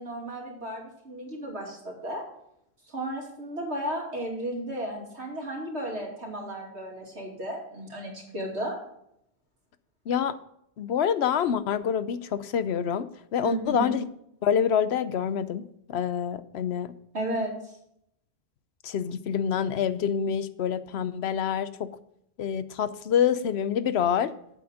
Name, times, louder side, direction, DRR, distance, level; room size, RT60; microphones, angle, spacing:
voice 1, 0.0-2.2 2.9-8.8 13.4-14.0 17.1-17.5, right 1 dB, 90° right, -1 dB, 3.0 m, -34 dB
voice 2, 10.1-10.4 10.8-14.1 14.4-16.9 18.8-21.9 22.4-24.3, left 8 dB, 75° left, 14 dB, 0.9 m, -26 dB
8.6 x 8.0 x 4.9 m, 0.76 s
omnidirectional pair, 1.1 m